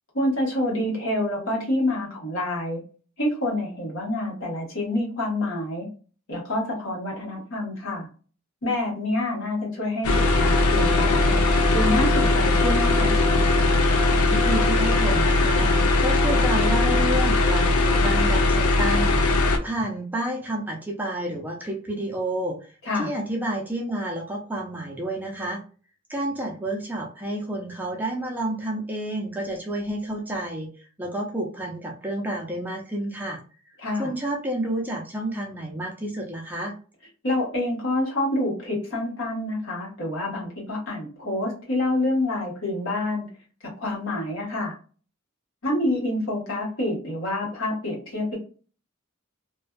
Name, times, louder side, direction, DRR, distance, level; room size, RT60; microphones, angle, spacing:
voice 1, 0.1-2.8 3.2-5.9 6.3-8.1 8.6-11.4 11.7-13.1 22.8-23.1 33.8-34.1 37.2-43.3 43.8-44.7 45.6-48.4, left 1 dB, 65° left, -2 dB, 1.2 m, -27 dB
sound 1, 10.0-19.6, left 2 dB, 85° left, 0.5 m, -20 dB
voice 2, 14.3-22.6 22.9-25.6 26.1-30.7 31.0-33.4 34.0-36.7, right 1 dB, 10° right, -1 dB, 0.4 m, -30 dB
2.5 x 2.3 x 2.3 m, 0.37 s
head